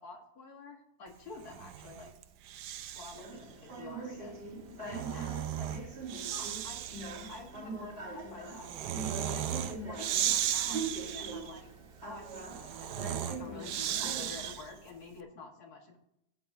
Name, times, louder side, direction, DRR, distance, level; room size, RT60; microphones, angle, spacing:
voice 1, 0.0-2.1 2.9-4.4 4.7-5.7 6.3-7.0 7.3-8.7 9.2-11.7 12.0-16.0, left 3 dB, 65° left, 2 dB, 1.9 m, -49 dB
Breathing, 1.4-3.3 4.6-14.8, right 11 dB, 90° right, 1.3 m, -36 dB
sound 1, 3.1-14.5, right 3 dB, 35° right, 1.5 m, -43 dB
15.5 x 7.8 x 2.6 m, 0.82 s
omnidirectional pair, 1.8 m